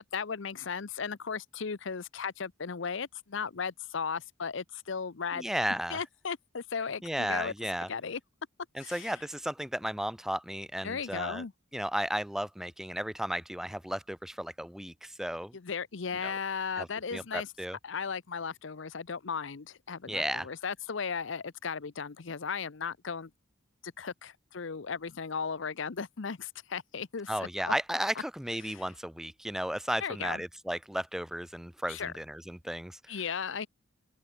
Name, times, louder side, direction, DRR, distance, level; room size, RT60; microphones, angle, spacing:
voice 1, 0.0-5.5 5.9-7.5 7.9-8.2 8.8-9.1 10.8-11.5 15.5-17.5 17.8-23.3 23.8-27.7 28.6-28.8 30.0-30.4 31.9-32.1 33.1-33.7, left 6 dB, 70° left, 0.7 m, -36 dB
voice 2, 5.3-6.0 7.0-7.9 8.7-11.4 11.7-15.6 16.2-16.3 16.8-17.8 20.1-20.5 27.3-33.1, equal, ahead, 0.5 m, -34 dB
open air
head